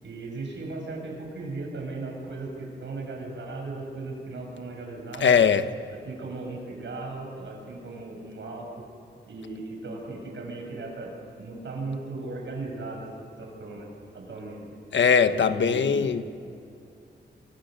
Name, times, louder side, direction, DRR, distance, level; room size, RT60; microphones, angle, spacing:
voice 1, 0.0-5.3 5.9-8.8 9.3-11.1 11.4-13.1 13.4-13.9 14.1-14.6 15.3-16.1, right 3 dB, 85° right, 0 dB, 8.0 m, -37 dB
voice 2, 5.2-5.7 14.9-16.2, left 6 dB, 90° left, 10 dB, 1.3 m, -20 dB
27.5 x 27.0 x 6.8 m, 2.7 s
wide cardioid pair, 145°, 19 cm